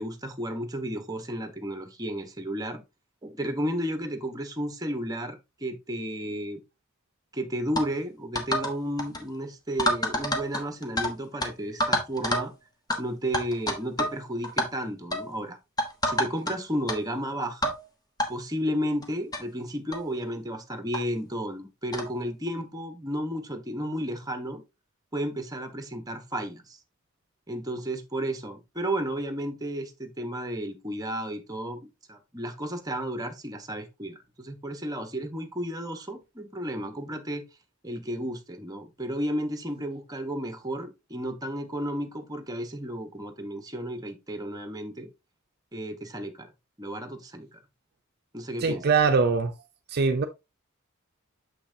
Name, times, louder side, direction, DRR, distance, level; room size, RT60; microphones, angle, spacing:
voice 1, 0.0-2.8 3.2-6.6 7.3-12.5 13.0-15.6 16.0-17.7 18.3-24.6 25.1-26.8 27.5-31.8 32.1-37.5 37.8-45.1 45.7-46.5 46.8-47.6 48.3-48.9, equal, 20° right, 1.1 m, -33 dB
sound 1, 7.8-7.9 8.4-8.7 9.0-9.2 9.8-11.1 11.4-11.5 11.8-12.5 12.9-13.0 13.3-14.2 14.4-14.7 15.1-15.3 15.8-16.5 16.9-17.0 17.6-17.8 18.2-18.3 19.0-19.1 19.3-19.4 19.9-20.1 20.9-21.0 21.9-22.1, left 1 dB, 20° left, 1.3 m, -27 dB
voice 2, 48.6-49.5 49.9-50.2, right 5 dB, 50° right, 0.6 m, -22 dB
7.4 x 5.7 x 2.7 m
head